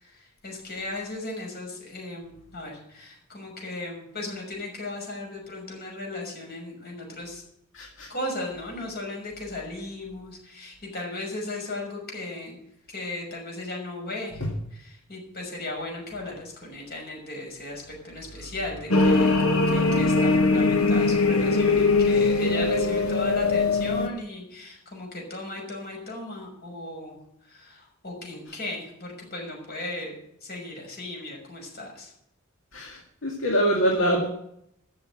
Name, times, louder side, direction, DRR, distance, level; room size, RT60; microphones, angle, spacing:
voice 1, 0.0-7.4 8.1-12.6 12.9-14.4 14.7-27.2 27.4-30.1 30.4-32.1, left 2 dB, 50° left, 0 dB, 6.1 m, -36 dB
voice 2, 7.7-8.1 32.7-34.3, equal, 65° left, -1 dB, 2.3 m, -24 dB
sound 1, 18.9-24.1, left 3 dB, 90° left, 1.7 m, -21 dB
14.5 x 6.8 x 9.0 m, 0.73 s
head